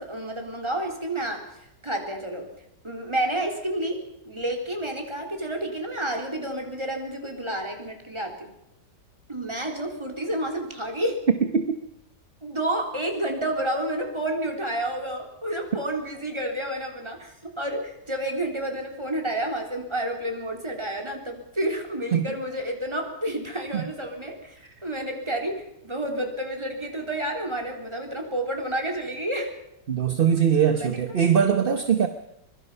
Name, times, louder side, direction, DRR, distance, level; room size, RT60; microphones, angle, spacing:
voice 1, 0.0-1.4 1.8-2.5 2.8-8.5 9.3-11.2 12.4-29.5 30.7-31.0, right 1 dB, 15° right, 2 dB, 3.6 m, -30 dB
voice 2, 29.9-32.1, right 7 dB, 40° right, 8 dB, 1.0 m, -21 dB
24.0 x 22.0 x 5.6 m, 0.81 s
omnidirectional pair, 1.8 m